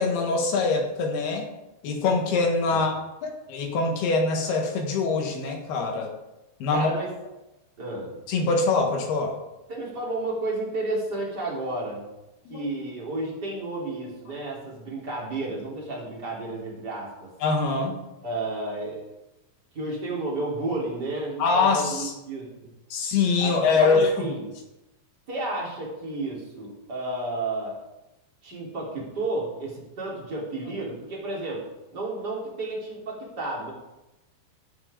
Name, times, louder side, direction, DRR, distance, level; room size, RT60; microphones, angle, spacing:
voice 1, 0.0-1.4 1.8-2.9 3.2-6.1 6.6-6.9 8.3-9.4 12.5-12.6 17.4-18.0 21.4-22.1 22.9-24.3, left 4 dB, 70° left, 3 dB, 3.3 m, -24 dB
voice 2, 6.7-7.1 7.8-8.2 9.7-12.0 12.5-17.3 18.2-19.0 19.7-22.5 23.4-24.5 25.3-27.8 28.4-31.6 31.9-33.7, right 2 dB, 25° right, -4 dB, 3.1 m, -32 dB
17.5 x 6.1 x 5.0 m, 0.96 s
omnidirectional pair, 5.0 m